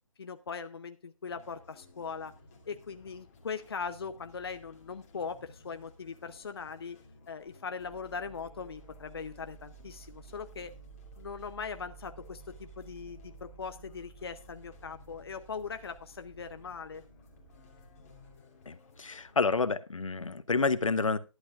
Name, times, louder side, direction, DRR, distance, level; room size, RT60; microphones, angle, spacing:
voice 1, 0.2-2.3 2.7-7.0 7.3-10.7 11.2-17.0, left 5 dB, 45° left, 9 dB, 0.8 m, -40 dB
sound 1, 1.3-19.4, left 3 dB, 25° left, 2.9 m, -58 dB
sound 2, 7.8-18.4, right 6 dB, 10° left, 1.4 m, -54 dB
voice 2, 18.7-21.2, left 4 dB, 70° left, 14 dB, 1.0 m, -29 dB
15.0 x 11.5 x 2.5 m, 0.29 s
figure-of-eight pair, 160°, 17 cm